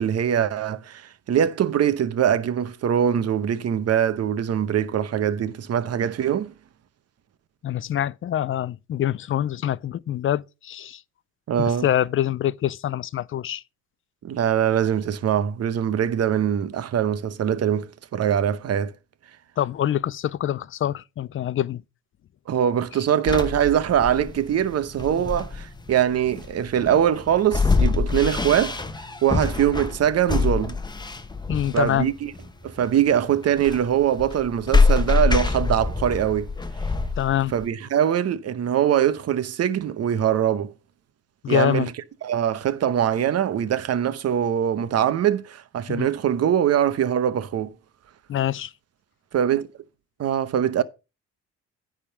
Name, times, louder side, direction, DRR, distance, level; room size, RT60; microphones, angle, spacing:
voice 1, 0.0-6.5 11.5-11.9 14.2-18.9 22.5-28.8 29.2-30.8 31.7-32.3 32.6-36.5 37.5-40.7 41.5-41.9 42.2-47.7 49.3-49.7 50.2-50.8, right 9 dB, 55° right, 0.9 m, -22 dB
voice 2, 7.6-11.0 11.6-13.6 19.6-21.8 31.5-32.1 37.2-37.5 41.4-41.9 45.9-46.1 48.3-48.7, left 11 dB, 45° left, 0.4 m, -25 dB
sound 1, 23.3-37.7, left 4 dB, 15° left, 0.9 m, -25 dB
9.9 x 3.7 x 6.7 m
cardioid pair, 90°, 30 cm